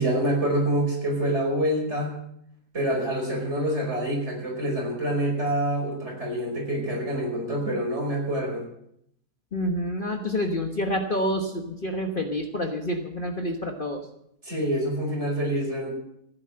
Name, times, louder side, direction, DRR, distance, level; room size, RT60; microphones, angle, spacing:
voice 1, 0.0-2.2 2.7-8.6 14.4-15.9, right 1 dB, 45° right, -1 dB, 5.2 m, -26 dB
voice 2, 9.5-14.0, equal, 35° left, 3 dB, 1.3 m, -28 dB
15.5 x 9.6 x 7.7 m, 0.75 s
omnidirectional pair, 1.7 m